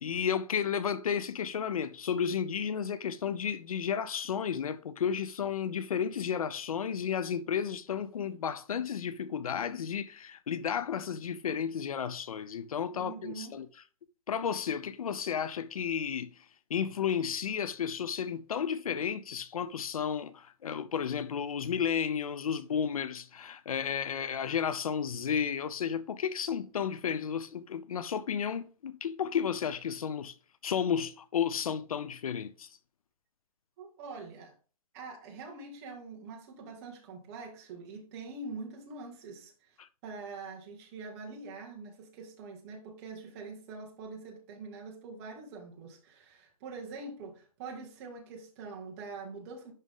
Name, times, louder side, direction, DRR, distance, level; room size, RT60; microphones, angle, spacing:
voice 1, 0.0-13.7 14.3-30.4 30.6-32.7 39.8-39.9, left 7 dB, 80° left, 0.7 m, -32 dB
voice 2, 12.9-13.6 33.8-34.5 34.9-39.8 40.0-49.7, right 4 dB, 25° right, 1.8 m, -44 dB
11.0 x 3.7 x 3.6 m
hypercardioid pair, 165°, 18 cm